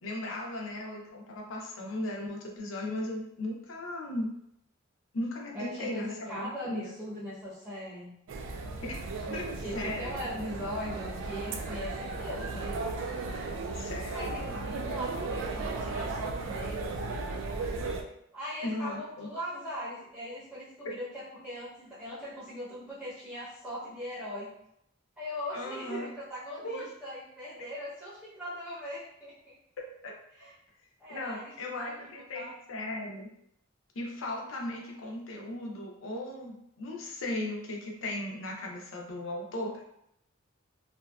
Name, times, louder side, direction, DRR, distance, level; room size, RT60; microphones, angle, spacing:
voice 1, 0.0-4.3 5.1-6.9 8.8-9.0 9.3-10.3 13.7-14.4 18.6-19.3 25.5-26.1 26.6-26.9 30.0-30.1 31.1-33.3 34.0-39.8, left 1 dB, 80° left, 0 dB, 0.5 m, -37 dB
voice 2, 5.5-8.1 9.3-12.7 14.1-16.9 18.3-24.5 25.2-29.5 30.3-30.5 31.0-31.9 32.3-32.5, equal, 5° right, -10 dB, 0.7 m, -40 dB
sound 1, 8.3-18.0, right 3 dB, 70° right, 0.3 m, -35 dB
2.6 x 2.2 x 2.3 m, 0.76 s
head